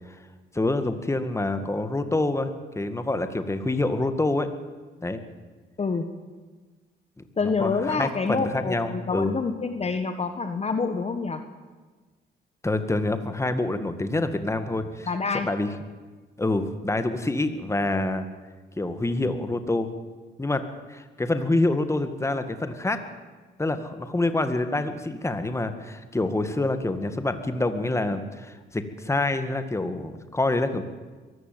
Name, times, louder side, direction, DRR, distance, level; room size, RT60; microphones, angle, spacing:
voice 1, 0.5-2.5 2.8-4.5 5.0-5.2 7.6-9.3 12.6-15.1 15.4-15.7 16.4-18.3 18.8-19.9 20.4-20.6 20.9-23.0 23.6-30.8, left 2 dB, 15° left, 9 dB, 1.9 m, -26 dB
voice 2, 7.4-11.4 15.0-15.5, left 4 dB, 30° left, 8 dB, 1.6 m, -27 dB
23.0 x 14.5 x 9.3 m, 1.3 s
cardioid pair, 90°, 20 cm